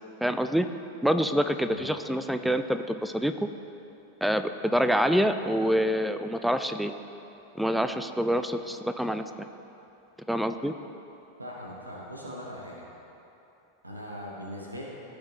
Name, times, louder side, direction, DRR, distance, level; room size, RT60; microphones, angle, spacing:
voice 1, 0.2-0.7 1.0-3.3 4.2-6.9 7.6-9.2 10.3-10.7, equal, ahead, 9 dB, 0.4 m, -26 dB
voice 2, 11.4-12.9 13.8-14.8, equal, 80° right, -3 dB, 1.1 m, -40 dB
15.0 x 5.1 x 3.1 m, 2.9 s
figure-of-eight pair, 90°, 0 cm